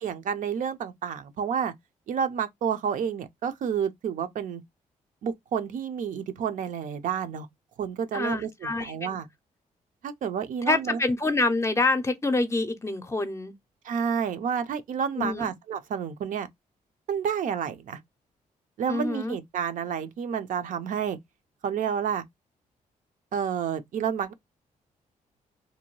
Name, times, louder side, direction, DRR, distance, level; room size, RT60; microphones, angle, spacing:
voice 1, 0.0-1.7 2.1-4.6 5.2-7.5 7.8-9.3 10.0-11.0 13.8-16.5 17.1-18.0 18.8-21.2 21.6-22.2 23.3-24.3, right 7 dB, 65° right, 0.5 m, -30 dB
voice 2, 8.1-8.9 10.7-13.5 15.2-15.5 18.9-19.4, left 2 dB, 20° left, 0.5 m, -26 dB
2.7 x 2.2 x 3.0 m
cardioid pair, 85°, 14 cm